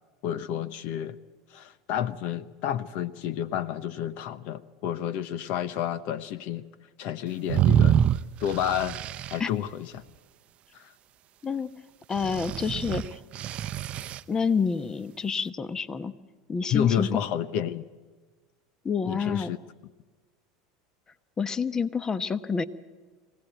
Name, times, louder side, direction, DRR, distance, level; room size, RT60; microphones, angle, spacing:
voice 1, 0.2-1.2 1.5-6.7 7.0-8.0 8.4-9.0 9.3-10.0 10.7-10.9 16.7-17.8 19.0-19.6, left 10 dB, 60° left, 16 dB, 0.9 m, -30 dB
sound 1, 7.5-9.4 12.2-14.2, right 10 dB, 45° right, 0.6 m, -25 dB
voice 2, 12.1-13.2 14.3-16.1 16.5-17.1 18.8-19.5 21.4-22.6, left 5 dB, 25° left, 14 dB, 1.1 m, -28 dB
24.5 x 17.0 x 9.2 m, 1.4 s
hypercardioid pair, 95°, 3 cm